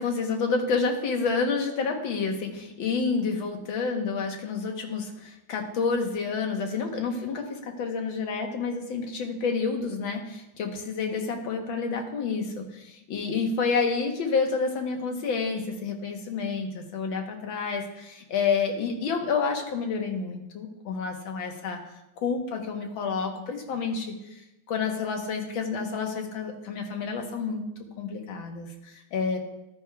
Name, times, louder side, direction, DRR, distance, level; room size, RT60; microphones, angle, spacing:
voice 1, 0.0-21.8 22.2-24.4 24.7-27.6 28.0-29.4, left 5 dB, 70° left, 3 dB, 1.9 m, -29 dB
12.5 x 9.4 x 2.3 m, 0.91 s
omnidirectional pair, 2.3 m